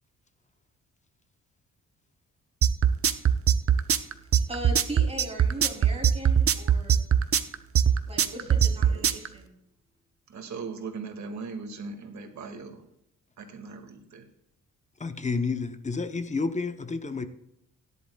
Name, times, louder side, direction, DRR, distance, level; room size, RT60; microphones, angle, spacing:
sound 1, 2.6-9.3, right 8 dB, 45° right, 0.8 m, -20 dB
voice 1, 4.5-7.0 8.1-9.6, right 1 dB, 20° right, 3.1 m, -38 dB
voice 2, 8.4-9.2 10.3-12.8 13.4-14.3, right 4 dB, 60° right, 2.1 m, -39 dB
voice 3, 15.0-17.3, left 4 dB, 20° left, 0.8 m, -30 dB
17.0 x 11.0 x 2.3 m
cardioid pair, 130°, 31 cm